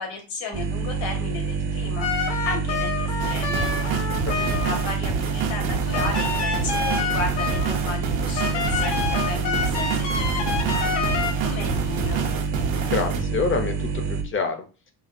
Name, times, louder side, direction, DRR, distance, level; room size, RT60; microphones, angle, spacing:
voice 1, 0.0-3.7 4.5-12.2, left 4 dB, 85° left, 2 dB, 1.4 m, -34 dB
sound 1, 0.5-14.2, right 5 dB, 40° right, 0.5 m, -27 dB
sound 2, 2.0-4.9 5.9-7.9 8.4-11.3, left 6 dB, 65° left, 0.9 m, -28 dB
sound 3, 3.2-13.2, right 5 dB, 85° right, 0.8 m, -29 dB
voice 2, 12.9-14.7, left 5 dB, 30° left, 7 dB, 0.4 m, -27 dB
4.9 x 2.2 x 2.5 m, 0.34 s
cardioid pair, 130°, 45 cm